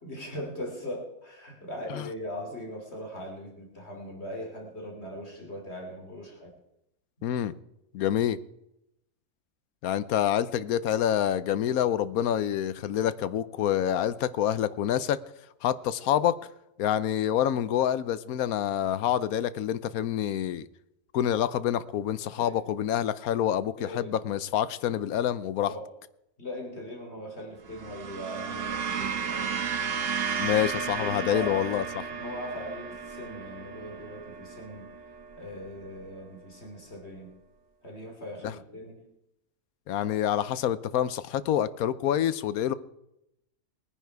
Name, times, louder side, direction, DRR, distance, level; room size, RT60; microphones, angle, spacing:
voice 1, 0.0-6.5 22.3-22.5 23.8-24.2 25.7-25.9 26.4-29.7 31.0-31.6 32.1-34.9 35.3-37.3 37.8-39.0, equal, 50° left, 0 dB, 3.4 m, -40 dB
voice 2, 7.2-7.5 7.9-8.4 9.8-15.2 15.6-16.4 16.8-20.7 21.1-25.7 30.4-32.1 38.4-38.5 39.9-42.7, left 10 dB, 90° left, 16 dB, 1.2 m, -27 dB
sound 1, 27.7-36.1, right 6 dB, 65° right, 1.4 m, -34 dB
21.0 x 9.9 x 4.7 m, 0.83 s
omnidirectional pair, 1.5 m